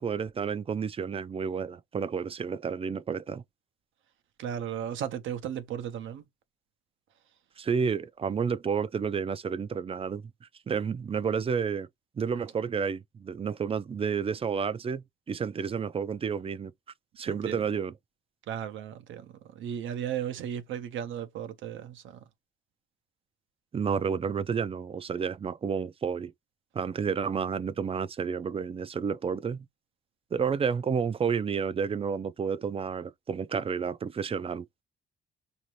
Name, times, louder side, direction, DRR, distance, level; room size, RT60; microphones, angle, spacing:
voice 1, 0.0-3.4 7.6-10.2 10.7-11.9 12.2-16.7 17.2-17.9 23.7-26.3 26.7-29.7 30.3-34.8, right 6 dB, 30° right, 0.4 m, -30 dB
voice 2, 4.4-6.3 17.2-17.6 18.5-22.2, right 9 dB, 75° right, 0.6 m, -35 dB
5.0 x 2.7 x 3.0 m
cardioid pair, 90°, 20 cm